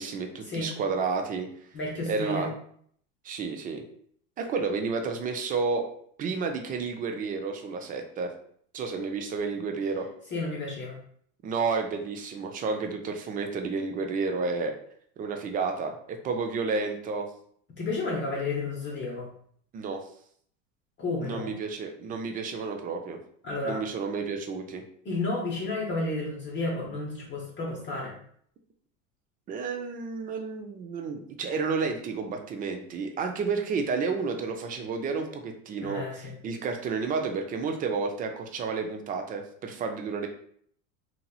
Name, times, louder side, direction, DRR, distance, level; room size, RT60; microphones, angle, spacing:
voice 1, 0.0-1.5 2.1-2.5 3.2-3.8 4.4-5.9 6.2-8.3 8.7-10.1 11.4-14.7 15.2-17.3 19.7-20.0 21.2-23.2 23.6-24.8 29.5-40.3, right 4 dB, 25° right, 4 dB, 0.3 m, -31 dB
voice 2, 1.7-2.5 10.3-11.0 17.7-19.3 21.0-21.5 23.4-23.8 25.0-28.1 35.8-36.3, left 2 dB, 30° left, -3 dB, 0.7 m, -31 dB
2.8 x 2.8 x 2.3 m, 0.63 s
supercardioid pair, 100°, 39 cm